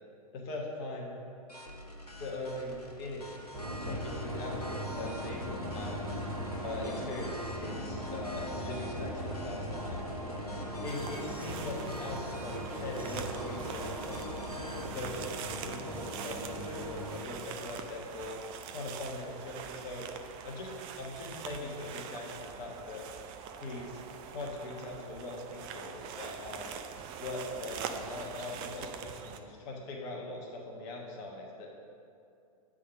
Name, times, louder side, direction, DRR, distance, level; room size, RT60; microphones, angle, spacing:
voice 1, 0.3-1.1 2.2-3.4 3.8-6.1 6.6-10.0 10.8-14.3 14.8-18.4 18.7-20.1 20.4-20.7 21.0-23.0 23.6-24.0 24.3-26.7 27.2-31.7, left 2 dB, 40° left, -1 dB, 1.1 m, -41 dB
sound 1, 1.5-14.9, left 1 dB, 90° left, 0.8 m, -47 dB
sound 2, 3.5-17.2, equal, 65° right, 1.5 m, -39 dB
sound 3, 10.9-29.4, right 7 dB, 25° right, 0.4 m, -44 dB
8.4 x 3.7 x 5.9 m, 2.5 s
figure-of-eight pair, 105°, 19 cm